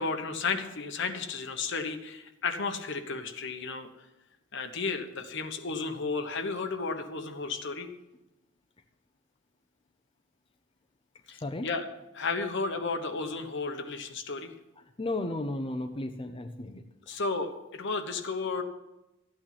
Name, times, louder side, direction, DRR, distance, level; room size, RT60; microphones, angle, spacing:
voice 1, 0.0-3.9 4.5-7.9 11.3-11.8 12.1-14.5 17.1-18.6, left 4 dB, 65° left, 7 dB, 1.2 m, -33 dB
voice 2, 15.0-17.2, left 2 dB, 25° left, 6 dB, 0.6 m, -34 dB
13.5 x 9.0 x 5.9 m, 0.98 s
head